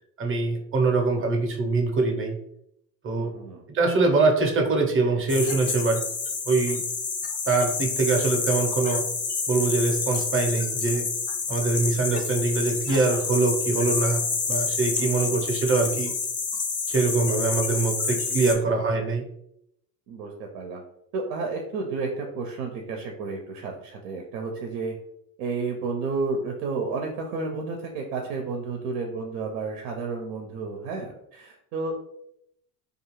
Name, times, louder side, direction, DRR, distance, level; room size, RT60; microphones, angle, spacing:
voice 1, 0.2-2.4 3.0-3.3 3.7-6.0 6.5-6.8 7.5-9.1 9.5-11.1 11.5-16.1 16.9-19.2, right 3 dB, 25° right, 3 dB, 0.6 m, -23 dB
voice 2, 3.2-3.6 15.0-15.4 18.3-18.6 18.9-19.0 20.1-20.8 21.1-24.9 25.4-31.9, right 4 dB, 85° right, 2 dB, 0.6 m, -32 dB
sound 1, 5.3-18.5, left 5 dB, 20° left, 0.3 m, -28 dB
2.4 x 2.4 x 3.0 m, 0.76 s
supercardioid pair, 85°, 48 cm